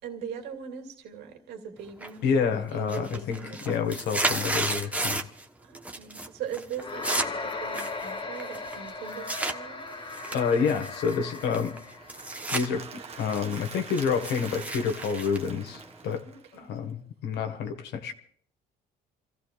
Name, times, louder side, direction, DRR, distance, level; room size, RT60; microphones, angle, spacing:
voice 1, 0.0-4.0 5.6-10.3 16.2-16.8, right 7 dB, 80° right, 2.4 m, -41 dB
sound 1, 2.0-2.4 2.7-5.4 5.7-6.3 6.5-9.6 10.1-12.7 13.0-16.2, right 2 dB, 10° right, 1.2 m, -33 dB
voice 2, 2.2-3.4 3.6-5.2 10.3-11.8 12.5-12.9 13.2-16.2 16.6-18.1, left 6 dB, 80° left, 1.7 m, -28 dB
sound 2, 6.8-12.2, left 3 dB, 30° left, 1.9 m, -37 dB
Applause / Crowd, 11.9-16.8, right 5 dB, 35° right, 1.3 m, -44 dB
28.0 x 15.5 x 2.5 m
cardioid pair, 110°, 17 cm